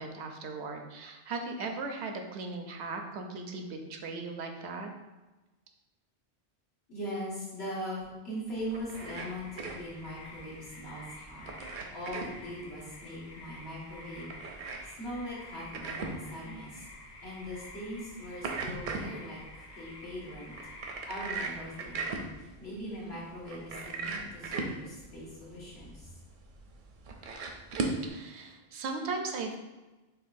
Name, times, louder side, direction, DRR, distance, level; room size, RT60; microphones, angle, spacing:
voice 1, 0.0-4.9 28.0-29.6, right 3 dB, 85° right, 4 dB, 0.9 m, -38 dB
voice 2, 6.9-11.5 11.9-14.7 15.0-16.9 17.2-20.5 21.1-26.1, equal, 70° left, -7 dB, 1.6 m, -41 dB
sound 1, 8.6-28.1, right 3 dB, 60° right, 0.6 m, -40 dB
sound 2, 9.0-22.0, left 2 dB, 45° left, 0.7 m, -50 dB
6.6 x 2.3 x 2.6 m, 1.1 s
omnidirectional pair, 1.1 m